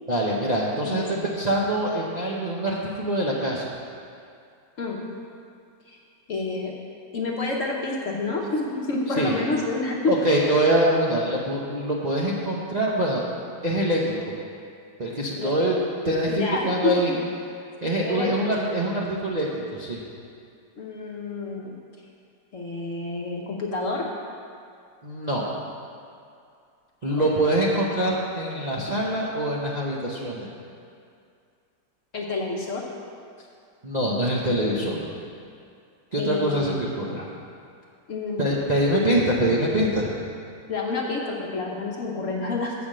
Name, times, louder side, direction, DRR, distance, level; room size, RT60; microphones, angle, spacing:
voice 1, 0.1-3.6 9.2-9.4 10.1-13.2 13.6-14.2 15.0-17.1 17.8-20.0 25.0-25.4 27.0-30.5 33.8-35.1 36.1-37.3 38.4-40.1, right 1 dB, 40° right, -5 dB, 0.6 m, -24 dB
voice 2, 0.8-1.2 4.8-5.1 5.9-6.0 6.3-6.7 7.1-10.1 15.4-15.5 16.3-17.2 18.0-18.5 20.8-21.7 22.5-24.1 27.1-27.3 32.1-32.8 36.2-36.7 38.1-38.5 40.7-42.7, left 3 dB, 50° left, -1 dB, 1.0 m, -28 dB
8.3 x 5.2 x 7.5 m, 2.4 s
omnidirectional pair, 2.0 m